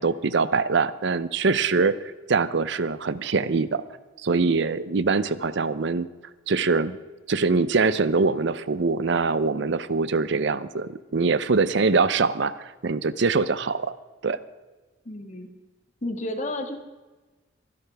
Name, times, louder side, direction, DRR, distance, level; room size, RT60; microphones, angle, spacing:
voice 1, 0.0-3.8 4.2-6.1 6.5-7.0 7.3-13.9 14.2-14.4, right 4 dB, 65° right, 15 dB, 0.6 m, -23 dB
voice 2, 15.0-15.5 16.0-16.8, left 1 dB, 40° left, 5 dB, 1.7 m, -31 dB
24.0 x 11.5 x 3.4 m, 1.2 s
head